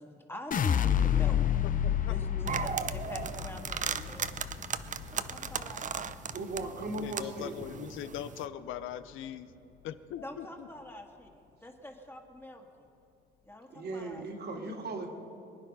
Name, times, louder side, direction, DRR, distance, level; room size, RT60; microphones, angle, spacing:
voice 1, 0.0-1.4 2.1-4.3 5.1-6.2 10.2-11.3 11.6-12.9 13.4-14.2, left 1 dB, 10° left, 3 dB, 1.8 m, -45 dB
sound 1, 0.5-6.7 7.1-7.7, left 9 dB, 40° left, 0.5 m, -30 dB
voice 2, 1.6-2.2 7.0-9.5 9.8-10.7, left 10 dB, 90° left, 12 dB, 0.6 m, -41 dB
sound 2, 2.5-8.5, right 7 dB, 40° right, 0.6 m, -37 dB
voice 3, 6.3-7.9 13.7-15.1, right 2 dB, 55° right, 1 dB, 2.3 m, -38 dB
23.0 x 9.8 x 5.5 m, 2.7 s
cardioid pair, 90°, 20 cm